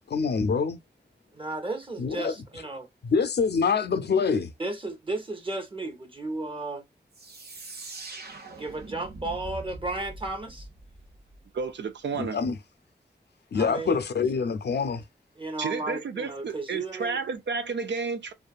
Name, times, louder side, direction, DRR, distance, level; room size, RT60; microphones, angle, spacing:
voice 1, 0.1-0.8 2.0-2.3 3.0-4.5 12.1-12.6 13.5-15.0, left 5 dB, 70° left, 0.5 m, -25 dB
voice 2, 1.3-2.9 4.6-6.9 8.5-10.7 13.5-14.1 15.4-17.2, right 2 dB, 30° right, 0.9 m, -34 dB
sound 1, 7.1-11.7, right 2 dB, 65° right, 0.8 m, -43 dB
voice 3, 11.5-12.4 15.6-18.3, right 5 dB, 90° right, 0.5 m, -31 dB
2.7 x 2.4 x 2.3 m
cardioid pair, 60°, 18 cm